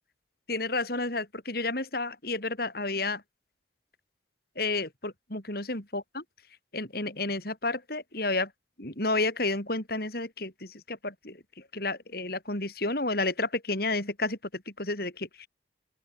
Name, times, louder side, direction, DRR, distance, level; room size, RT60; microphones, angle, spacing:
voice 1, 0.5-3.2 4.6-6.0 6.7-8.5 8.8-11.4 11.7-15.5, left 2 dB, 55° left, 4.6 m, -31 dB
open air
head